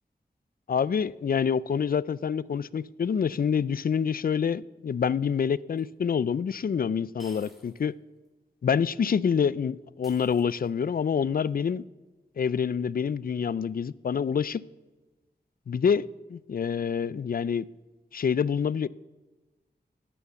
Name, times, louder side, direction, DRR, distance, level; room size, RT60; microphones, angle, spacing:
voice 1, 0.7-7.9 8.6-11.8 12.4-14.6 15.7-17.7 18.1-18.9, left 7 dB, 55° left, 0.4 m, -27 dB
sound 1, 5.8-5.9 7.2-7.9 8.3-8.4 10.0-10.9, equal, ahead, 2.5 m, -54 dB
12.5 x 9.2 x 7.0 m
wide cardioid pair, 65°, 18 cm